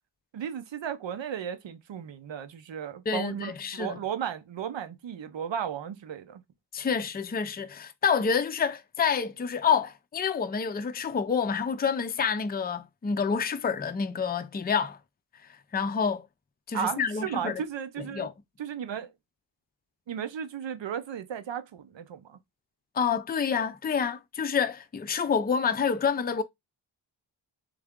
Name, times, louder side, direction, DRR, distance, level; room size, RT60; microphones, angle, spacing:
voice 1, 0.3-6.4 16.7-18.3 18.6-19.1 20.1-22.4, right 8 dB, 85° right, 0.8 m, -35 dB
voice 2, 3.1-4.0 6.7-15.0 15.7-16.3 16.7-17.6 18.0-18.3 22.9-26.4, left 6 dB, 25° left, 0.4 m, -28 dB
3.5 x 3.5 x 3.6 m
wide cardioid pair, 125°, 43 cm